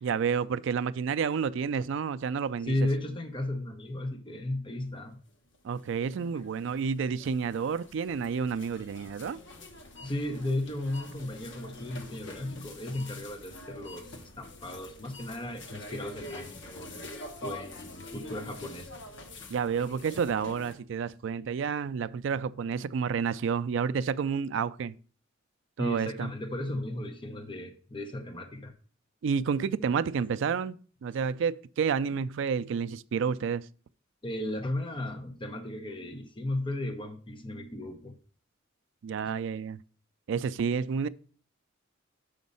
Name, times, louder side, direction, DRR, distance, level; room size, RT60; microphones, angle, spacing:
voice 1, 0.0-2.7 5.6-9.4 19.5-24.9 25.8-26.3 29.2-33.7 39.0-39.8 40.3-41.1, right 6 dB, 65° right, 0.3 m, -30 dB
voice 2, 2.6-5.2 6.2-6.3 10.0-17.0 17.4-18.9 25.8-28.7 34.2-38.1, left 1 dB, 25° left, 0.8 m, -35 dB
sound 1, 5.5-20.7, left 2 dB, 65° left, 1.0 m, -46 dB
6.3 x 5.1 x 5.4 m
head